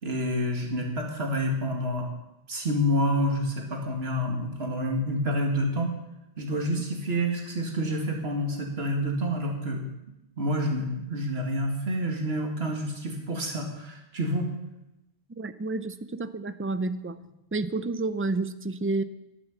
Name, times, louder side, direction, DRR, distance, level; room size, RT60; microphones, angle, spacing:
voice 1, 0.0-2.1 2.5-5.9 6.4-9.8 10.4-14.5, equal, 85° right, 1 dB, 2.4 m, -28 dB
voice 2, 15.4-17.2 17.5-19.0, right 3 dB, 20° right, 12 dB, 0.4 m, -30 dB
10.5 x 10.5 x 7.3 m, 0.92 s
omnidirectional pair, 1.0 m